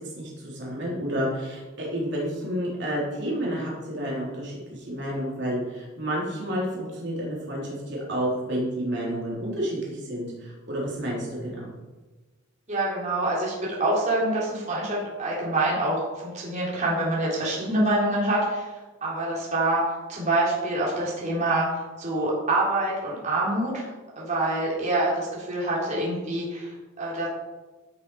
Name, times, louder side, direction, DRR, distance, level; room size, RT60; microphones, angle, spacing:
voice 1, 0.0-11.6, equal, 55° right, -4 dB, 3.4 m, -30 dB
voice 2, 12.7-18.7 19.0-21.7 22.0-23.9 24.2-26.7 27.0-27.3, right 2 dB, 35° right, -6 dB, 3.5 m, -26 dB
15.0 x 7.1 x 4.8 m, 1.2 s
head